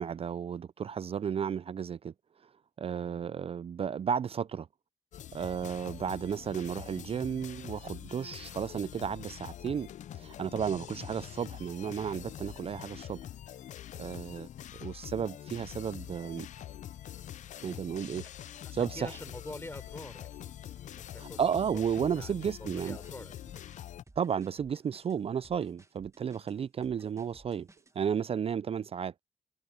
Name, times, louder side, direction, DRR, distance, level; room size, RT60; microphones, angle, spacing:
voice 1, 0.0-2.1 2.8-4.7 5.3-9.9 10.1-13.2 14.0-16.5 17.6-18.2 18.7-19.2 21.2-23.0 24.2-27.7 28.0-29.1, right 7 dB, 55° right, 0.4 m, -33 dB
voice 2, 2.9-3.3 18.8-21.5 22.1-23.6, left 2 dB, 20° left, 3.8 m, -46 dB
sound 1, 5.1-24.0, left 11 dB, 85° left, 0.5 m, -45 dB
sound 2, 22.7-28.0, right 2 dB, 25° right, 1.7 m, -59 dB
cardioid pair, 60°, 12 cm